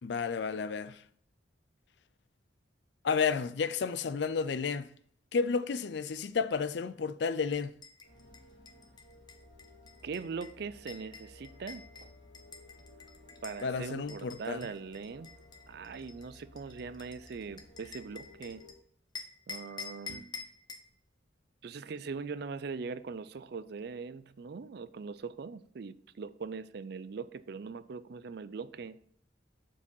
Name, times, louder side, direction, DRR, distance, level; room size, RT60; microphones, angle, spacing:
voice 1, 0.0-1.0 3.0-4.9 5.3-7.7 13.6-14.7, left 5 dB, 65° left, 0.4 m, -31 dB
sound 1, 7.5-13.7 14.1-18.7 19.2-20.9, left 4 dB, 20° left, 0.7 m, -48 dB
sound 2, 8.0-18.7, left 1 dB, 85° left, 2.2 m, -57 dB
voice 2, 10.0-11.8 13.4-15.3 15.7-18.6 19.5-20.2 21.6-29.0, right 5 dB, 55° right, 0.4 m, -41 dB
6.9 x 4.8 x 5.3 m
head